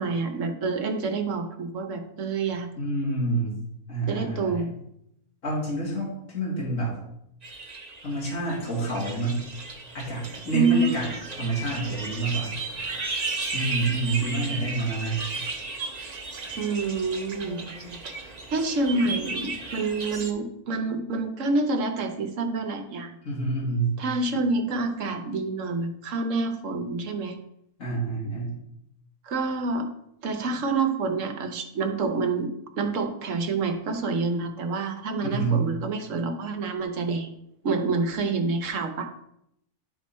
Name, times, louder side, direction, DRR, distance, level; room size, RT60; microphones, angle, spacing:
voice 1, 0.0-2.7 4.1-4.7 10.5-11.1 16.5-18.1 18.5-23.2 24.0-27.4 29.2-29.9 30.2-32.5 32.8-37.3 37.6-39.1, right 3 dB, 65° right, 6 dB, 1.2 m, -27 dB
voice 2, 2.8-3.6 3.9-4.7 5.4-7.0 8.0-9.4 9.9-11.1 11.4-12.5 13.5-15.2 23.2-23.9 27.8-28.5 35.2-35.6, right 2 dB, 65° left, -6 dB, 2.9 m, -28 dB
sound 1, 7.4-20.3, right 3 dB, 35° right, 0.8 m, -35 dB
11.0 x 3.9 x 4.2 m, 0.78 s
omnidirectional pair, 1.5 m